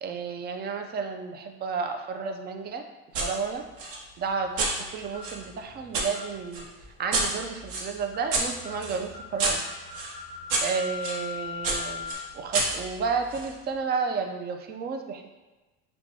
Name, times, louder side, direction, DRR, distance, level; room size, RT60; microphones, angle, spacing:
voice 1, 0.0-2.8 3.2-3.6 4.2-6.7 7.0-9.6 10.6-15.3, right 5 dB, 35° right, 5 dB, 0.4 m, -32 dB
sound 1, 3.1-3.3 3.8-6.1 6.5-11.2 11.6-13.5, right 3 dB, 80° right, 0.9 m, -30 dB
sound 2, 5.1-5.4 6.1-6.3 7.1-7.4 8.1-8.3 8.6-8.8 9.1-9.3 9.6-12.1, left 6 dB, 25° left, 0.9 m, -39 dB
5.9 x 2.3 x 2.7 m, 1.1 s
supercardioid pair, 110°, 29 cm